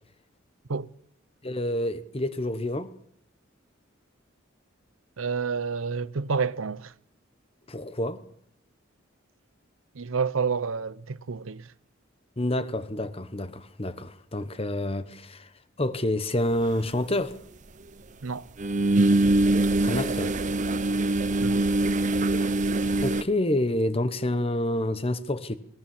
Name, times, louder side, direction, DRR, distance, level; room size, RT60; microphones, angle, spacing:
voice 1, 1.4-2.9 7.7-8.2 12.4-15.5 15.8-17.4 19.8-20.3 23.0-25.6, left 1 dB, 30° left, 1.1 m, -28 dB
voice 2, 5.2-6.9 9.9-11.7 18.2-18.4 21.4-21.6, right 5 dB, 85° right, 0.7 m, -29 dB
sound 1, 16.7-16.8 18.6-23.2, right 2 dB, 35° right, 0.7 m, -23 dB
20.5 x 19.0 x 7.3 m
head